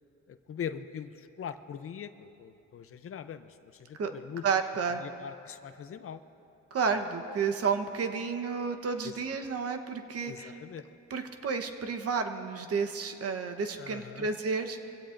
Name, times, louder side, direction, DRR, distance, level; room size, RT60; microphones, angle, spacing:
voice 1, 0.3-4.4 5.0-6.2 9.0-9.1 10.3-10.8 13.8-14.3, left 8 dB, 45° left, 11 dB, 0.6 m, -41 dB
voice 2, 4.4-5.0 6.7-10.6 11.1-14.9, right 5 dB, 50° right, 6 dB, 1.1 m, -31 dB
23.5 x 16.5 x 2.6 m, 2.9 s
cardioid pair, 90°, 30 cm